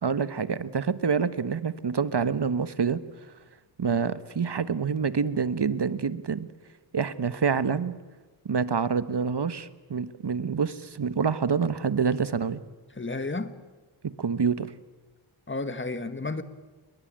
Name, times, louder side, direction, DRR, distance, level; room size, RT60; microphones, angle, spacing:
voice 1, 0.0-3.0 3.8-6.5 6.9-8.0 8.4-12.6 14.0-14.7, right 6 dB, 55° right, 13 dB, 1.4 m, -27 dB
voice 2, 12.9-13.5 15.5-16.4, left 3 dB, 25° left, 10 dB, 1.7 m, -32 dB
29.0 x 22.5 x 8.9 m, 1.3 s
wide cardioid pair, 105°, 48 cm